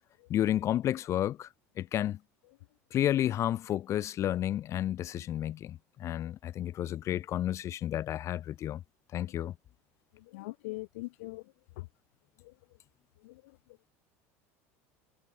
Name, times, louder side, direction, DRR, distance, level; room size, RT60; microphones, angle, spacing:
voice 1, 0.3-1.5 1.8-2.2 2.9-8.8 9.1-9.5, left 12 dB, 40° left, 0.4 m, -31 dB
voice 2, 10.2-11.4 11.8-11.9 12.4-12.5 13.2-13.4, left 22 dB, 75° left, 1.8 m, -41 dB
hypercardioid pair, 85°, 8 cm